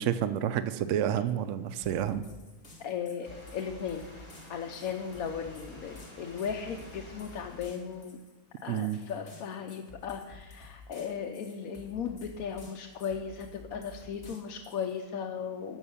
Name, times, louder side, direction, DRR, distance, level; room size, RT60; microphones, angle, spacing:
voice 1, 0.0-2.2 8.7-9.0, right 10 dB, 65° right, 11 dB, 0.8 m, -29 dB
sound 1, 1.8-15.0, left 3 dB, 40° left, 2.1 m, -52 dB
voice 2, 2.8-4.1 4.5-8.2 8.6-15.8, left 7 dB, 70° left, 3 dB, 1.2 m, -36 dB
sound 2, 3.2-8.2, equal, 20° left, 2.2 m, -51 dB
13.5 x 5.7 x 7.0 m, 1.2 s
omnidirectional pair, 1.6 m